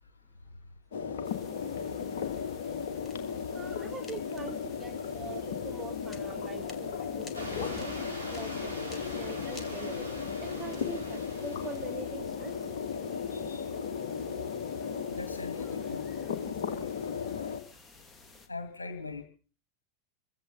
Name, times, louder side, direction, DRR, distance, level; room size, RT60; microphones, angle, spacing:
sound 1, 0.9-17.6, left 6 dB, 55° left, 2.3 m, -36 dB
sound 2, 1.2-18.5, left 3 dB, 15° left, 2.2 m, -54 dB
voice 1, 3.5-8.0 8.3-10.1 10.4-12.7, right 4 dB, 15° right, 8 dB, 1.5 m, -44 dB
sound 3, 7.3-12.2, right 1 dB, 85° right, 3.5 m, -44 dB
voice 2, 13.3-13.7 15.1-16.1 16.5-16.9 17.3-17.5 18.5-19.2, left 3 dB, 80° left, 6 dB, 2.1 m, -42 dB
23.0 x 15.5 x 4.0 m, 0.39 s
figure-of-eight pair, 90°, 0 cm